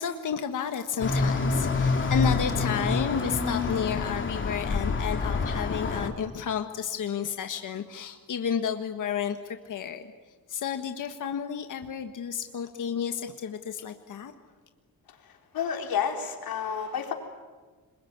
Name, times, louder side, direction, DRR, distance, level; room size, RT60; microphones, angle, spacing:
voice 1, 0.0-10.1 10.5-14.3, left 7 dB, 60° left, 7 dB, 1.5 m, -32 dB
sound 1, 1.0-6.1, left 4 dB, 35° left, 3.0 m, -27 dB
voice 2, 15.5-17.1, left 7 dB, 85° left, 3 dB, 4.1 m, -30 dB
26.5 x 22.0 x 9.6 m, 1.4 s
cardioid pair, 115°, 35 cm